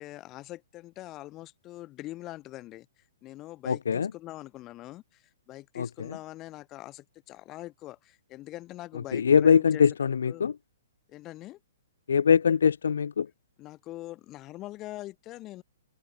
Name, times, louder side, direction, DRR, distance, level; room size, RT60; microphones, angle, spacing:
voice 1, 0.0-2.9 3.2-9.8 10.3-10.5 11.1-11.6 13.6-15.6, left 16 dB, 25° left, 7.1 m, -43 dB
voice 2, 3.7-4.1 5.8-5.9 9.1-10.5 12.1-13.3, left 6 dB, 85° left, 1.1 m, -22 dB
hypercardioid pair, 155°, 0 cm